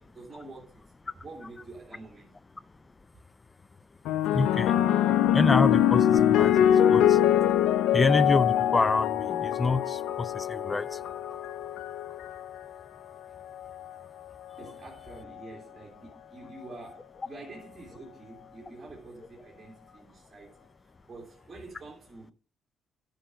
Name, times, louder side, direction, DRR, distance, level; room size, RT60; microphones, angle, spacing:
voice 1, 0.0-2.3 14.6-20.7 21.0-22.3, right 2 dB, 20° right, 2.7 m, -47 dB
sound 1, 4.1-12.6 13.5-13.9, left 10 dB, 85° left, 0.5 m, -24 dB
voice 2, 4.3-4.7 5.3-7.2 7.9-11.1, left 3 dB, 25° left, 0.4 m, -27 dB
10.0 x 5.3 x 5.0 m
cardioid pair, 90°, 0 cm